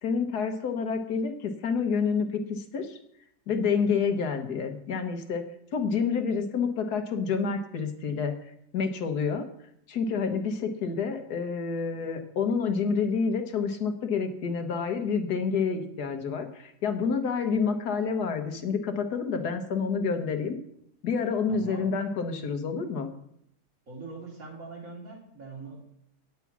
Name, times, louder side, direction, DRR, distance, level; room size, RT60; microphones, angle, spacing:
voice 1, 0.0-3.0 3.5-5.4 5.7-9.4 9.9-20.6 21.0-23.1, left 5 dB, 70° left, 6 dB, 1.5 m, -28 dB
voice 2, 21.5-21.9 23.9-25.8, right 4 dB, 55° right, -2 dB, 3.1 m, -42 dB
9.6 x 8.2 x 5.9 m, 0.74 s
omnidirectional pair, 1.8 m